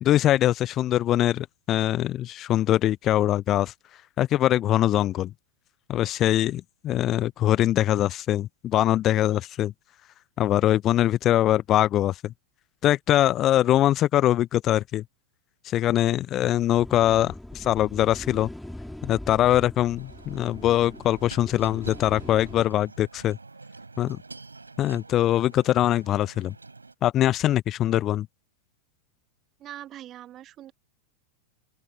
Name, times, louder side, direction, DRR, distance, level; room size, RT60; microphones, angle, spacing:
voice 1, 0.0-3.7 4.2-5.3 5.9-9.7 10.4-12.3 12.8-15.0 15.6-18.5 19.0-23.4 24.0-24.2 24.8-26.5 27.0-28.3, left 13 dB, 30° left, 0.3 m, -22 dB
sound 1, 16.7-22.7, left 1 dB, 5° left, 2.8 m, -41 dB
sound 2, 20.0-26.9, right 3 dB, 80° right, 3.7 m, -46 dB
voice 2, 29.6-30.7, right 12 dB, 30° right, 1.3 m, -42 dB
open air
figure-of-eight pair, 90°, 0 cm